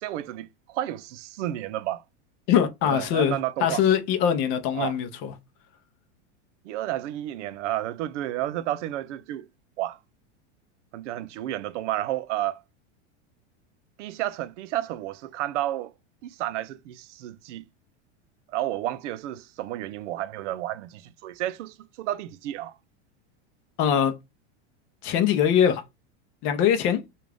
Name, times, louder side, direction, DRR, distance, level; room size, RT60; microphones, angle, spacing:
voice 1, 0.0-2.0 2.8-3.8 4.7-5.0 6.6-9.5 9.8-10.0 10.9-12.6 14.0-15.9 16.2-17.6 18.5-22.8, right 14 dB, 85° right, 0.5 m, -31 dB
voice 2, 2.5-5.3 23.8-24.2 25.0-25.8 26.4-27.0, left 9 dB, 35° left, 0.6 m, -22 dB
3.7 x 2.4 x 3.3 m
supercardioid pair, 155°, 35 cm